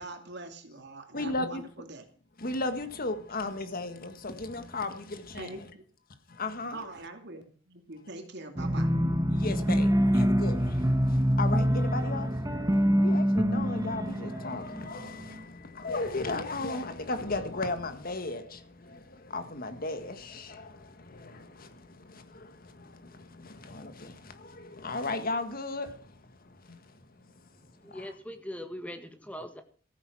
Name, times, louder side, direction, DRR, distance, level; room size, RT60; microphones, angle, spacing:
voice 1, 0.0-2.0 5.3-5.8 6.7-8.9, right 2 dB, 60° right, 2.5 m, -44 dB
voice 2, 1.1-1.6 2.4-5.7 6.3-6.8 9.3-12.3 13.0-27.3 27.8-28.1, left 2 dB, 50° left, 1.7 m, -36 dB
sound 1, 8.6-15.4, equal, 20° right, 1.4 m, -26 dB
voice 3, 27.8-29.6, equal, 5° left, 1.6 m, -41 dB
14.5 x 9.4 x 6.1 m
head